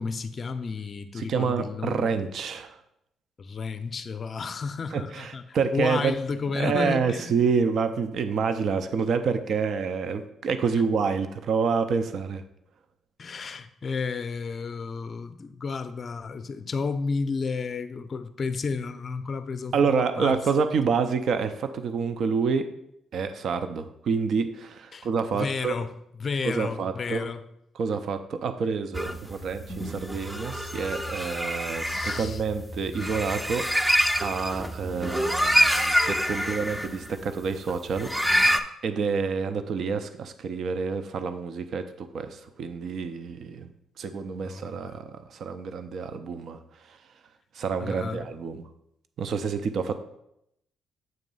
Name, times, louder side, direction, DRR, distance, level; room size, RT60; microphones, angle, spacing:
voice 1, 0.0-2.0 3.4-7.3 13.2-20.4 24.9-25.1 25.3-25.9 26.2-27.4 31.8-32.4 44.4-45.0 47.8-48.3, left 4 dB, 40° left, 10 dB, 0.5 m, -32 dB
voice 2, 1.1-2.8 4.9-6.1 6.5-12.4 19.7-22.6 23.1-25.7 26.4-27.3 27.8-33.8 34.2-38.1 38.8-43.7 44.0-46.6 46.9-47.0 47.5-48.6 49.2-49.9, right 5 dB, 65° right, 9 dB, 0.5 m, -28 dB
sound 1, 28.9-38.6, equal, 5° right, 0.5 m, -26 dB
7.6 x 3.1 x 5.4 m, 0.79 s
cardioid pair, 90°, 0 cm